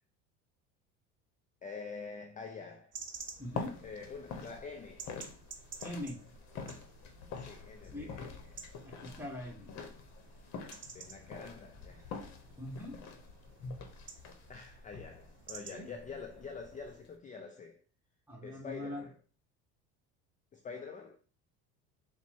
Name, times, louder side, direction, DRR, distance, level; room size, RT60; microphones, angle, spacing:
voice 1, 1.6-2.9 3.8-5.1 7.4-8.6 10.9-12.1 14.5-17.8 18.4-19.1 20.5-21.2, left 5 dB, 25° left, 0.5 m, -46 dB
sound 1, 2.9-17.0, right 5 dB, 40° right, 0.8 m, -52 dB
sound 2, 3.1-17.2, left 5 dB, 60° left, 0.9 m, -47 dB
voice 2, 3.4-3.7 5.8-6.2 7.9-8.1 8.8-9.7 12.6-13.0 15.7-15.9 18.3-19.1, left 1 dB, 5° right, 1.5 m, -42 dB
4.0 x 2.2 x 4.4 m
supercardioid pair, 80°, 32 cm